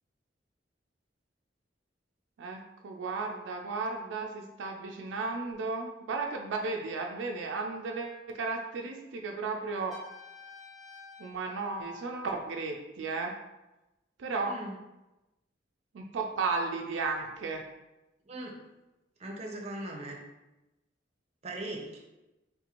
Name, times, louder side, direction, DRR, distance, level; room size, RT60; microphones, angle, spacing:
voice 1, 2.4-10.0 11.2-13.3 14.2-14.5 15.9-17.6, right 4 dB, 80° right, 2 dB, 0.4 m, -34 dB
Trumpet, 9.9-12.7, left 4 dB, ahead, 0.8 m, -52 dB
voice 2, 14.4-14.8 18.3-18.6 19.2-20.2 21.4-22.0, right 1 dB, 35° right, 0 dB, 0.6 m, -39 dB
3.6 x 2.5 x 2.9 m, 0.98 s
head